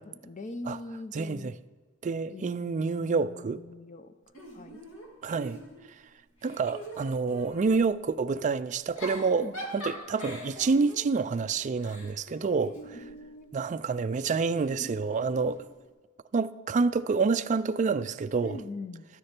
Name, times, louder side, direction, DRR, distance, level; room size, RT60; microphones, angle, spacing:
voice 1, 0.0-1.5 2.3-4.1 4.5-4.8 9.3-9.5 12.6-13.5 18.4-19.0, left 2 dB, 35° left, 0.5 m, -42 dB
voice 2, 1.1-1.5 2.0-3.6 5.2-5.6 6.4-13.0 13.5-15.7 16.3-18.6, right 4 dB, 35° right, 0.3 m, -28 dB
Giggle / Chuckle chortle, 4.3-6.0 6.4-7.8 8.7-13.2 14.3-15.7, equal, 65° left, 2.0 m, -43 dB
12.5 x 9.7 x 4.4 m
head